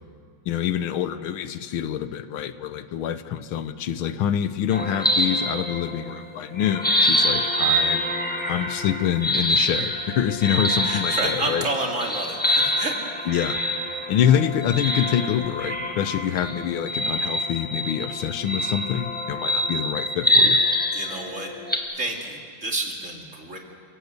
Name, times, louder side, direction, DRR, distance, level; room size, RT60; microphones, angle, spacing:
voice 1, 0.5-8.1 8.5-11.7 13.3-13.6 14.1-20.6, left 9 dB, 80° left, 12 dB, 1.7 m, -26 dB
sound 1, 4.7-6.2 6.5-21.8, equal, 5° left, 1.6 m, -25 dB
voice 2, 10.8-13.0 20.9-21.5 22.0-23.6, right 2 dB, 35° right, 2 dB, 2.7 m, -29 dB
29.0 x 17.5 x 8.1 m, 2.3 s
omnidirectional pair, 2.3 m